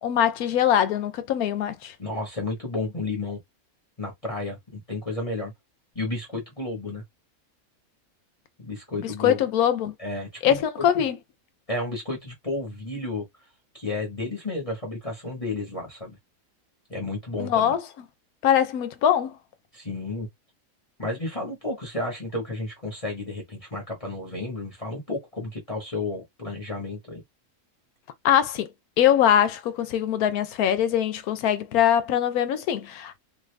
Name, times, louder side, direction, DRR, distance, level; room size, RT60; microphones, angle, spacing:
voice 1, 0.0-1.9 9.0-9.9 10.4-11.2 17.4-17.8 18.4-19.3 28.2-28.7 29.0-33.2, left 10 dB, 85° left, 1.2 m, -22 dB
voice 2, 2.0-3.4 4.0-5.5 5.9-7.0 8.6-9.4 10.0-11.1 11.7-13.2 13.7-16.2 16.9-17.7 19.7-20.3 21.0-27.2, left 2 dB, 25° left, 1.1 m, -32 dB
2.9 x 2.6 x 3.2 m
omnidirectional pair, 1.5 m